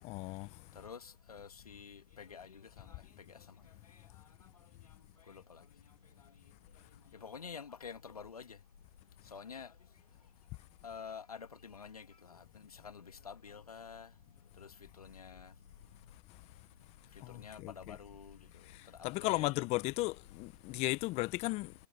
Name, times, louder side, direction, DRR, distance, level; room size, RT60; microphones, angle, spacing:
voice 1, 0.0-0.6 16.3-16.4 17.2-18.0 18.6-21.7, left 21 dB, 35° left, 0.8 m, -36 dB
voice 2, 0.7-3.0 3.3-3.4 5.3-5.6 7.2-8.6 9.3-9.7 10.8-12.4 12.8-14.1 14.6-14.7 15.0-15.5 17.3-18.4 19.1-19.5, left 6 dB, 90° left, 1.8 m, -48 dB
hypercardioid pair, 115°, 18 cm